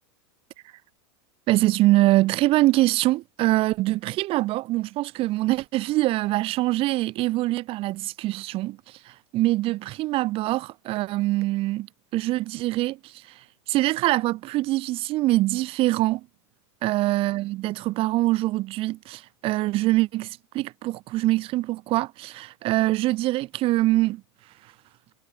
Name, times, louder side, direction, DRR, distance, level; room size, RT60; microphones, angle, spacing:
voice 1, 1.5-8.8 9.1-11.9 12.1-13.2 13.7-16.3 16.8-24.2, right 18 dB, 40° right, 0.7 m, -24 dB
supercardioid pair, 125°, 15 cm